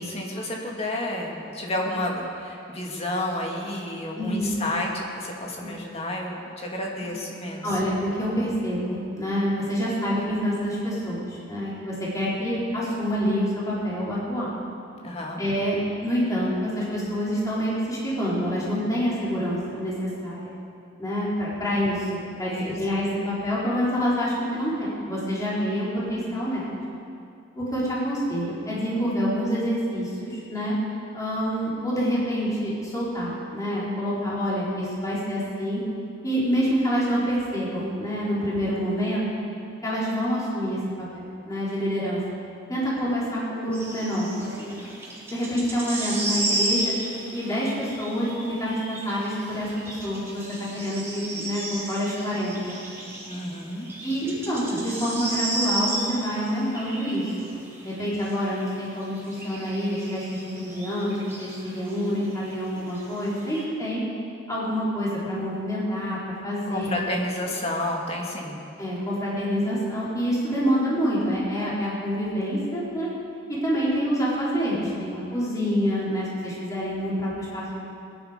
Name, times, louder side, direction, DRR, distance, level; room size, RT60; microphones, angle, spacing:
voice 1, 0.0-7.6 15.0-15.4 22.5-22.7 53.3-53.9 66.7-68.6, left 1 dB, 35° left, -1 dB, 2.4 m, -30 dB
voice 2, 4.1-4.5 5.6-5.7 7.6-14.5 15.4-20.5 21.0-26.8 27.6-30.7 31.1-35.8 36.2-39.2 39.8-42.2 42.7-44.8 45.3-46.9 47.3-52.8 54.0-57.3 57.8-64.0 64.5-66.9 68.8-73.1 73.5-77.8, equal, 20° left, -7 dB, 4.3 m, -27 dB
sound 1, 43.7-63.6, right 1 dB, 15° right, 3.2 m, -34 dB
21.5 x 10.5 x 5.3 m, 2.5 s
head